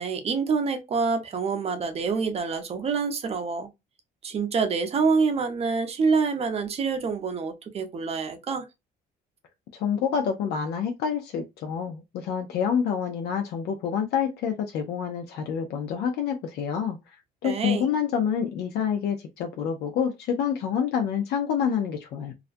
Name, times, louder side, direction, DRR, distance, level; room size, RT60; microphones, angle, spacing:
voice 1, 0.0-3.7 4.2-8.6 17.4-17.9, right 5 dB, 35° right, 0.6 m, -26 dB
voice 2, 9.7-17.0 17.4-22.3, left 7 dB, 75° left, 0.5 m, -27 dB
2.4 x 2.1 x 2.5 m
cardioid pair, 110°, 17 cm